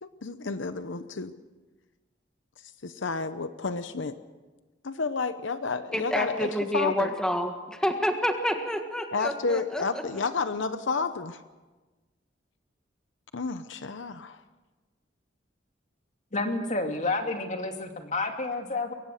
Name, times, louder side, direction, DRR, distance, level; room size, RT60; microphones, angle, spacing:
voice 1, 0.0-1.3 2.8-4.1 4.8-7.1 9.1-11.4 13.3-14.4, left 4 dB, 80° left, 11 dB, 0.8 m, -31 dB
voice 2, 5.9-10.2, equal, 5° left, 5 dB, 1.7 m, -29 dB
voice 3, 16.3-18.9, left 2 dB, 40° left, 4 dB, 2.3 m, -30 dB
22.5 x 18.5 x 6.6 m, 1.2 s
head